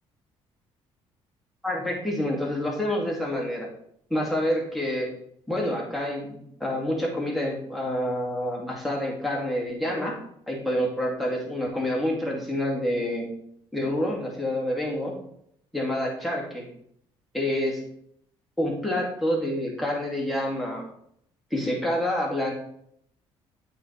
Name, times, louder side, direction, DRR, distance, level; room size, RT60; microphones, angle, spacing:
voice 1, 1.6-3.7 4.1-5.1 5.5-10.2 10.5-13.3 13.7-15.1 15.7-16.7 17.3-17.8 18.6-20.8 21.5-22.5, left 1 dB, ahead, -2 dB, 2.6 m, -27 dB
8.1 x 4.5 x 3.4 m, 0.70 s
supercardioid pair, 80°, 12 cm